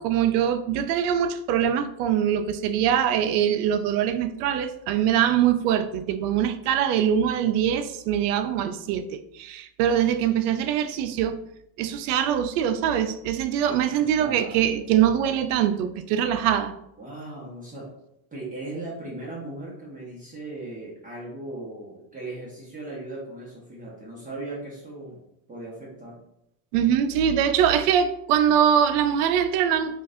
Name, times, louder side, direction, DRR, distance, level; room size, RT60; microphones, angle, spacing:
voice 1, 0.0-11.4 11.8-16.7 26.7-30.0, right 9 dB, 75° right, 10 dB, 0.5 m, -23 dB
voice 2, 13.6-14.6 17.0-17.9 18.3-25.2 25.5-26.2, right 2 dB, 15° right, -5 dB, 1.1 m, -38 dB
3.9 x 2.4 x 2.6 m, 0.79 s
supercardioid pair, 110°, 47 cm